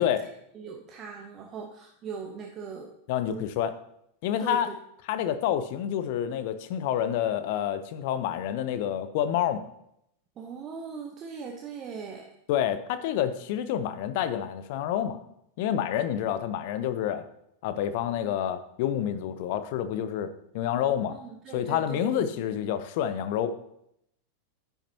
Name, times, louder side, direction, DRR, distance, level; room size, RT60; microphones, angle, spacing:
voice 1, 0.0-2.9 3.3-3.5 4.4-4.7 10.4-12.3 21.1-22.5, right 5 dB, 30° right, 2 dB, 0.9 m, -40 dB
voice 2, 3.1-3.7 4.2-4.7 5.1-9.6 12.5-15.2 15.6-17.2 17.6-20.3 20.5-21.1 21.5-23.5, left 10 dB, 50° left, 12 dB, 0.7 m, -28 dB
10.0 x 9.3 x 2.8 m, 0.76 s
figure-of-eight pair, 90°, 0 cm